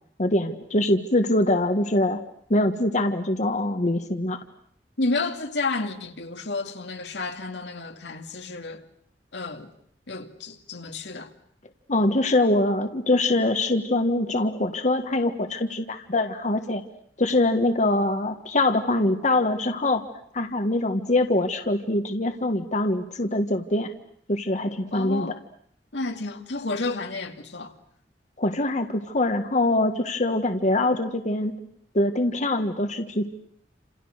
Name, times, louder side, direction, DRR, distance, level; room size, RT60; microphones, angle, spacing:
voice 1, 0.2-2.2 2.5-4.4 11.9-16.8 17.2-20.0 20.3-23.9 24.3-25.3 28.4-31.6 31.9-33.3, left 2 dB, 45° left, 1.5 m, -23 dB
voice 2, 5.0-8.9 9.3-9.7 10.1-11.3 24.9-25.4 25.9-27.8, left 3 dB, 80° left, 2.3 m, -31 dB
29.5 x 27.5 x 6.6 m
head